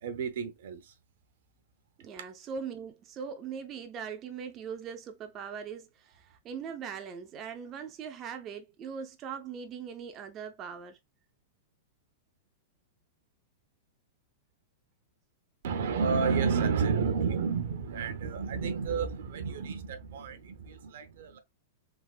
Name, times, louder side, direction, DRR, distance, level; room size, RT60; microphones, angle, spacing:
voice 1, 0.0-0.9 15.6-21.4, right 5 dB, 70° right, 0.6 m, -30 dB
voice 2, 2.0-11.0, right 6 dB, 25° right, 0.4 m, -40 dB
3.4 x 2.3 x 2.3 m
supercardioid pair, 155°, 0 cm